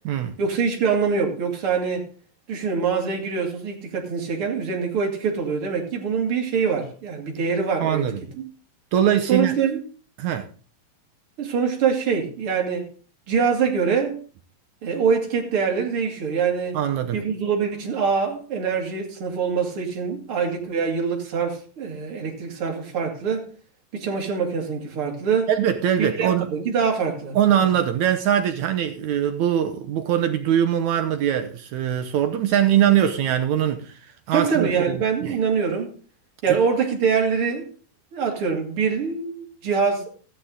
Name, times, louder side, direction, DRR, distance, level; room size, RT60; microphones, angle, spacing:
voice 1, 0.4-2.0 2.5-8.1 8.3-8.4 9.3-9.8 11.4-12.9 13.3-14.2 14.8-16.8 17.1-23.5 23.9-25.5 26.0-27.7 34.3-35.9 36.4-37.7 38.1-40.1, right 6 dB, 40° right, 2.8 m, -24 dB
voice 2, 7.8-8.2 8.9-9.5 10.2-10.5 16.7-17.2 25.5-26.5 27.3-35.4, right 10 dB, 70° right, 1.9 m, -22 dB
13.5 x 10.0 x 3.9 m
omnidirectional pair, 4.1 m